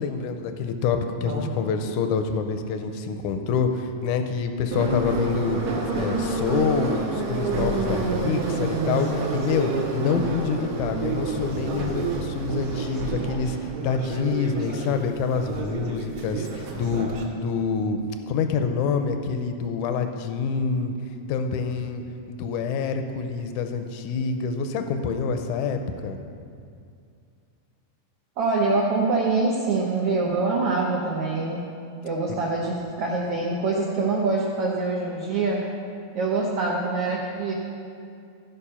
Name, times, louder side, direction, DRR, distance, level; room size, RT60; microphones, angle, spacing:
voice 1, 0.0-20.9 21.3-22.0 22.3-26.2 32.3-32.4, left 5 dB, 80° left, 7 dB, 1.8 m, -26 dB
voice 2, 1.1-1.6 28.4-31.6 32.0-35.7 36.1-37.5, right 3 dB, 90° right, -3 dB, 1.3 m, -25 dB
Subway metro underground, 4.7-17.2, right 4 dB, 60° right, 2.0 m, -29 dB
15.0 x 5.3 x 5.6 m, 2.4 s
omnidirectional pair, 4.0 m